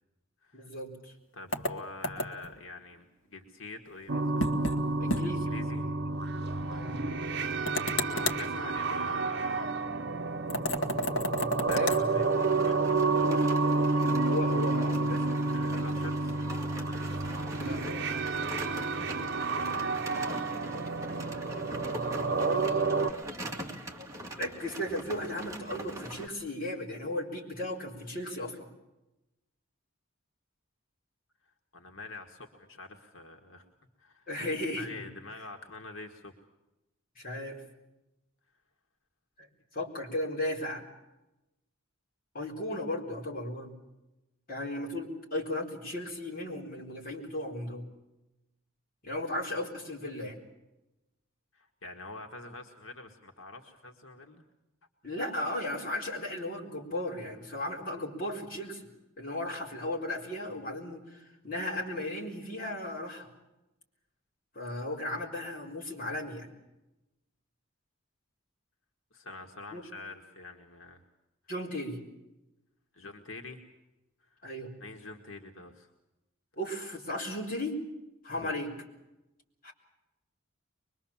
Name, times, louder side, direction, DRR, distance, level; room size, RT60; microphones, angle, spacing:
voice 1, 0.5-1.1 5.0-5.5 6.7-7.1 11.6-12.2 14.2-15.4 17.6-18.1 24.4-28.7 34.3-35.0 37.2-37.6 39.4-39.5 39.7-40.8 42.3-43.8 44.5-47.9 49.0-50.4 55.0-58.9 59.2-63.3 64.5-66.5 69.7-69.8 71.5-72.0 74.4-74.7 76.6-77.8 78.2-78.7 79.6-79.7, left 1 dB, 45° left, -1 dB, 4.3 m, -36 dB
voice 2, 1.3-4.2 5.4-5.9 6.5-6.9 8.1-9.7 11.6-12.3 12.6-12.8 15.5-16.4 22.2-22.7 31.7-33.7 34.0-34.3 34.8-36.3 51.5-54.4 69.1-71.0 72.9-73.6 74.2-74.4 74.8-75.9 78.4-78.6, left 3 dB, 85° left, 3 dB, 1.9 m, -45 dB
sound 1, 1.5-2.5 4.4-4.8 5.1-5.2 5.6-5.7 7.7-8.4 10.5-12.0, left 1 dB, 70° left, 1.7 m, -31 dB
sound 2, 4.1-23.1, right 3 dB, 55° right, 1.0 m, -30 dB
sound 3, 12.1-26.3, equal, 15° right, 2.2 m, -42 dB
24.0 x 22.0 x 7.3 m, 0.98 s
head